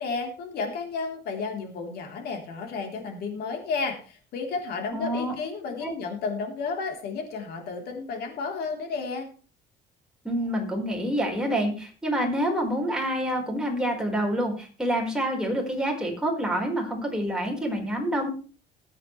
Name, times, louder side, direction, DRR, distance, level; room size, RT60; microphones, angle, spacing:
voice 1, 0.0-9.3, left 4 dB, 70° left, 2 dB, 3.6 m, -32 dB
voice 2, 4.9-5.3 5.8-5.9 10.2-18.3, equal, 5° right, 0 dB, 4.6 m, -27 dB
20.5 x 8.5 x 3.3 m, 0.37 s
cardioid pair, 110°, 17 cm